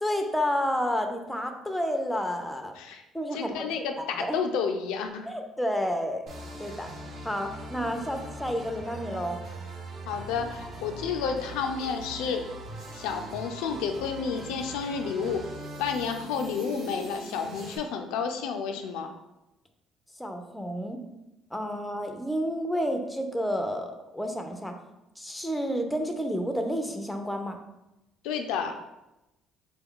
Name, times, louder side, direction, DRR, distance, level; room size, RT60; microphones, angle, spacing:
voice 1, 0.0-2.7 3.1-4.4 5.2-6.2 6.6-6.9 7.2-9.4 20.2-21.0 21.5-24.7 25.2-27.6, equal, 5° left, 5 dB, 0.4 m, -30 dB
voice 2, 3.3-5.3 10.1-12.4 12.9-15.4 15.8-19.1 28.2-28.7, left 6 dB, 90° left, 5 dB, 0.3 m, -30 dB
sound 1, 6.3-17.8, right 1 dB, 50° right, 0.6 m, -41 dB
3.3 x 2.2 x 3.6 m, 0.94 s
cardioid pair, 95°, 0 cm